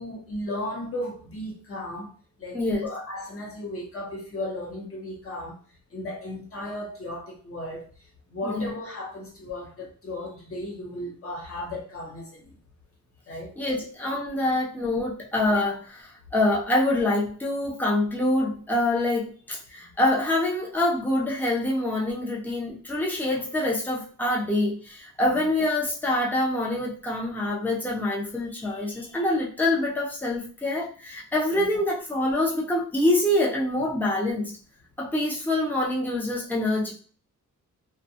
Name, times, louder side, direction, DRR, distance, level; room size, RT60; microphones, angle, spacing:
voice 1, 0.0-2.1 2.4-5.6 5.9-7.9 8.3-12.5 13.3-13.5 19.8-19.9 25.2-25.5 31.5-31.8, left 1 dB, 45° left, -2 dB, 0.8 m, -35 dB
voice 2, 2.5-2.9 8.4-8.6 13.6-34.5 35.0-36.9, left 1 dB, 5° left, -4 dB, 0.5 m, -25 dB
2.5 x 2.2 x 2.7 m, 0.41 s
wide cardioid pair, 160°, 32 cm